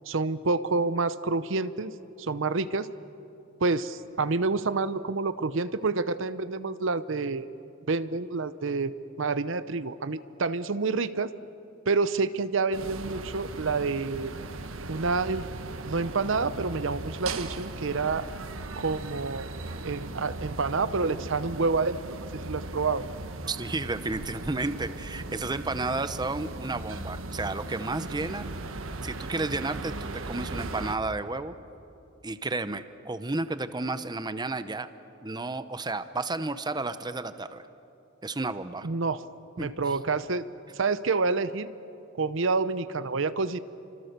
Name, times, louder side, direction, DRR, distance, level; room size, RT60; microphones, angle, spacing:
voice 1, 0.1-1.9 2.2-2.9 3.6-7.5 7.9-8.9 9.2-11.3 11.9-14.3 14.9-15.4 15.8-18.2 18.8-19.5 19.8-23.0 38.8-39.2 39.6-40.4 40.8-41.7 42.2-43.6, right 4 dB, 70° right, 13 dB, 0.8 m, -28 dB
sound 1, 12.7-31.0, right 2 dB, 85° right, 1.2 m, -38 dB
voice 2, 23.5-28.5 29.0-31.5 32.2-34.9 35.2-37.6 38.2-38.9 39.6-40.0, right 3 dB, 20° right, 11 dB, 0.8 m, -32 dB
29.5 x 26.0 x 6.7 m, 2.8 s
head